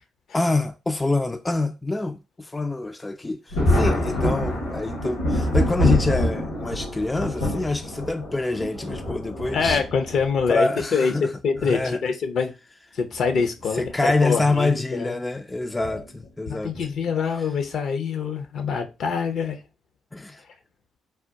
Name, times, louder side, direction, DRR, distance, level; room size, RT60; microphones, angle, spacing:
voice 1, 0.3-9.8 10.5-11.3 11.6-12.0 13.8-16.7 20.1-20.4, left 2 dB, 20° left, 0.3 m, -26 dB
Thunder, 3.5-10.6 11.6-11.7 13.1-13.4 13.8-13.9 15.8-16.0 16.7-17.1, left 1 dB, 90° left, 1.7 m, -26 dB
voice 2, 9.5-12.5 12.9-15.1 16.5-19.6, left 5 dB, 60° left, 0.6 m, -25 dB
3.4 x 2.2 x 2.7 m
hypercardioid pair, 50°, 0 cm